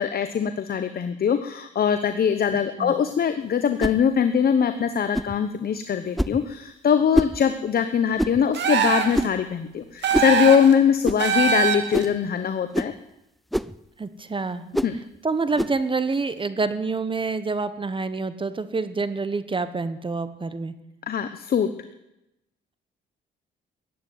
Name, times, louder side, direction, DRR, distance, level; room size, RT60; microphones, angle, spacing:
voice 1, 0.0-12.9 14.8-14.9 21.1-21.7, left 7 dB, 50° left, 9 dB, 1.0 m, -22 dB
voice 2, 2.5-2.9 14.0-14.6 15.2-20.7, right 4 dB, 25° right, 12 dB, 1.1 m, -27 dB
sound 1, 3.8-4.0 5.1-5.4 6.2-6.4 7.1-7.4 8.2-8.4 9.1-9.4 10.1-10.4 11.0-11.2 11.9-12.2 12.7-13.0 13.5-13.8 14.7-15.0 15.6-15.8, equal, ahead, 0.5 m, -25 dB
sound 2, 8.5-9.2 10.0-10.7 11.2-12.0, right 6 dB, 65° right, 2.3 m, -22 dB
15.0 x 9.3 x 9.4 m, 0.89 s
cardioid pair, 90°, 20 cm